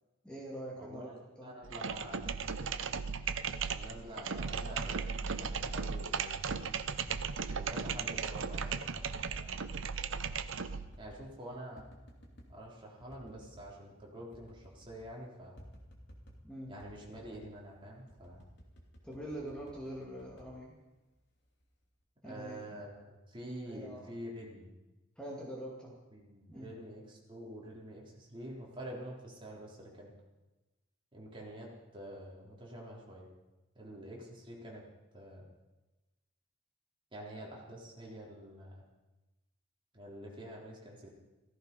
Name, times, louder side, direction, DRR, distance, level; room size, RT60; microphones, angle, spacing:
voice 1, 0.2-1.5 16.4-16.8 19.0-20.8 22.2-22.8 23.7-24.1 25.2-26.0 26.5-26.7, right 1 dB, 5° left, -4 dB, 2.3 m, -44 dB
voice 2, 0.8-1.1 1.4-2.5 3.7-6.6 7.5-9.0 9.3-9.7 11.0-11.9 12.5-15.6 16.7-18.4 22.2-24.7 26.1-30.1 31.1-33.3 33.8-34.8 35.1-35.4 37.1-38.8 39.9-41.1, right 1 dB, 25° right, -3 dB, 3.8 m, -47 dB
sound 1, 1.6-11.0, right 5 dB, 75° right, 0.8 m, -36 dB
sound 2, 7.1-8.2 9.2-9.8 10.3-11.3 11.8-12.5 13.0-13.7 14.0-14.1 14.3-15.1 15.6-16.5 16.8-17.5 18.1-21.2 21.6-22.0, equal, 60° left, 2.8 m, -56 dB
16.0 x 14.5 x 5.5 m, 1.1 s
head